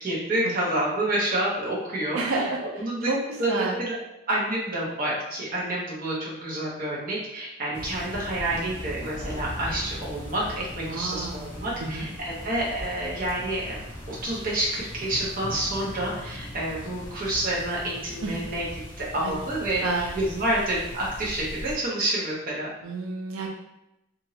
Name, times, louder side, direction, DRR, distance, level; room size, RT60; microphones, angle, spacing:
voice 1, 0.0-2.2 2.7-3.1 3.4-4.0 4.3-13.8 14.1-18.6 19.0-22.7, right 1 dB, 45° right, -5 dB, 0.9 m, -28 dB
voice 2, 2.1-3.2 3.5-3.8 10.9-11.5 11.8-12.1 18.2-18.4 19.2-19.3 19.8-20.2 22.8-23.5, right 3 dB, 90° right, -1 dB, 0.5 m, -30 dB
sound 1, 7.7-21.7, left 1 dB, 10° left, 0.6 m, -39 dB
2.9 x 2.6 x 2.7 m, 0.89 s
head